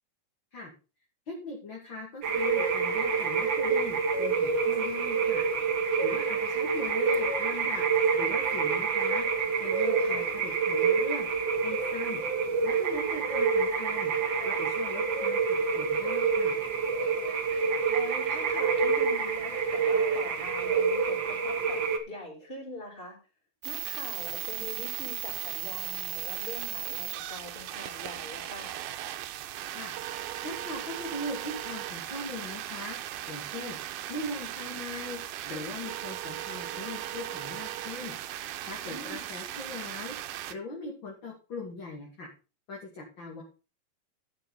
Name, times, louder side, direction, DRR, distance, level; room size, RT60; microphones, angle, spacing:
voice 1, 1.3-5.4 6.0-7.8 8.1-9.2 9.6-12.2 12.6-14.1 14.4-16.6 29.7-29.9 30.4-33.0 33.3-33.8 34.1-35.2 35.4-40.2 40.5-42.3 42.7-43.4, left 2 dB, 35° left, -2 dB, 2.7 m, -40 dB
sound 1, 2.2-22.0, right 5 dB, 50° right, 1.4 m, -27 dB
voice 2, 10.0-10.3 17.6-21.8 22.1-23.2 23.6-28.8 38.8-39.2, left 1 dB, 15° left, 2 dB, 3.9 m, -43 dB
sound 2, 23.6-40.5, right 14 dB, 90° right, 2.6 m, -37 dB
12.0 x 8.2 x 4.1 m, 0.32 s
omnidirectional pair, 4.2 m